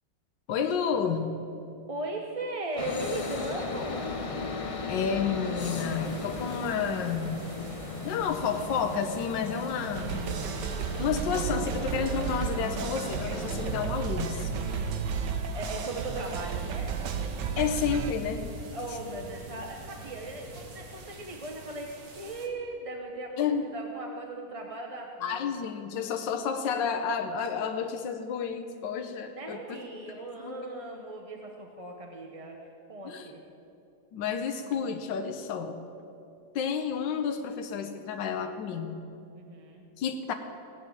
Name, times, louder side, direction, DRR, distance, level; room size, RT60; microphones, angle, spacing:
voice 1, 0.5-1.4 4.9-7.5 8.0-10.2 11.0-14.5 17.6-18.4 23.4-23.6 25.2-29.8 30.1-30.6 33.0-33.3 34.1-35.8 36.5-39.0 40.0-40.3, left 6 dB, 80° left, 6 dB, 1.5 m, -30 dB
voice 2, 1.9-4.2 14.4-15.1 15.5-17.0 18.7-25.5 29.0-33.4 39.3-39.9, right 2 dB, 25° right, 1 dB, 0.8 m, -38 dB
sound 1, 2.8-13.8, left 3 dB, 60° left, 0.3 m, -37 dB
sound 2, 5.6-22.5, right 3 dB, 55° right, 1.8 m, -46 dB
sound 3, 9.9-18.1, right 6 dB, 70° right, 1.5 m, -33 dB
17.5 x 6.9 x 8.9 m, 2.7 s
omnidirectional pair, 2.0 m